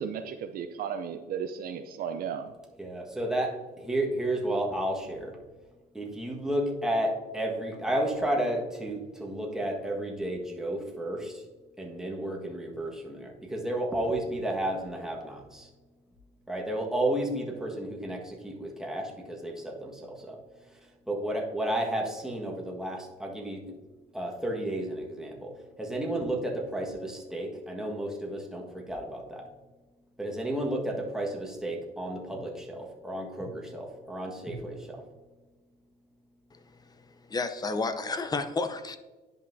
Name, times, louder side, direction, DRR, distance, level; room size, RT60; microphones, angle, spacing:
voice 1, 0.0-2.5, right 7 dB, 60° right, 0.5 m, -35 dB
voice 2, 2.8-5.4 5.9-11.4 11.8-15.7 16.5-23.8 24.1-29.5 30.2-35.0, right 1 dB, 5° right, 1.5 m, -32 dB
voice 3, 37.3-39.0, left 3 dB, 25° left, 0.6 m, -31 dB
10.5 x 5.4 x 2.7 m
cardioid pair, 110°, 17 cm